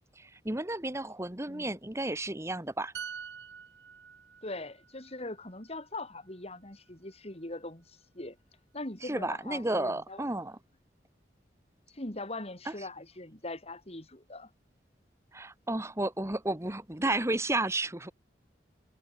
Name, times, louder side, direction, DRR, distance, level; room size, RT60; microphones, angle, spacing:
voice 1, 0.2-2.9 9.0-10.6 12.6-12.8 15.3-18.1, right 2 dB, 15° right, 1.6 m, -32 dB
sound 1, 2.9-6.5 6.9-7.1, right 7 dB, 80° right, 1.7 m, -46 dB
voice 2, 4.4-8.4 8.7-10.2 11.9-14.5, left 2 dB, 35° left, 3.5 m, -41 dB
head